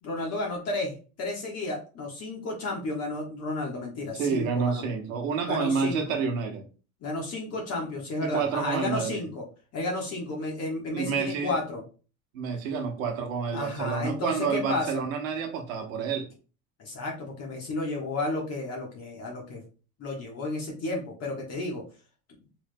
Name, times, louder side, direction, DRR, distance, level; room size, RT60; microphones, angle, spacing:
voice 1, 0.0-4.8 5.5-6.0 7.0-9.4 9.7-11.8 13.5-15.0 16.8-19.6 20.0-21.8, left 2 dB, 40° left, 1.4 m, -32 dB
voice 2, 4.1-6.6 8.2-9.2 10.9-11.5 12.3-16.3, right 5 dB, 90° right, 1.1 m, -29 dB
4.6 x 3.4 x 2.2 m
supercardioid pair, 120°, 40 cm